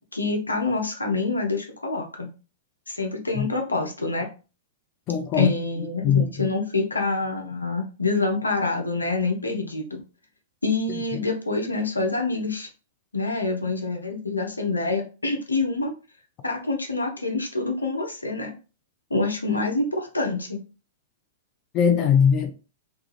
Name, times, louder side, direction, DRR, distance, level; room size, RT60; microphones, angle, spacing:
voice 1, 0.1-2.3 2.9-4.3 5.4-10.0 10.6-12.7 13.1-15.9 16.4-18.5 19.1-20.6, left 3 dB, 85° left, 0.7 m, -26 dB
voice 2, 5.1-5.5 6.0-6.5 21.7-22.5, left 7 dB, 35° left, 0.4 m, -20 dB
2.3 x 2.2 x 3.2 m
figure-of-eight pair, 105°, 0 cm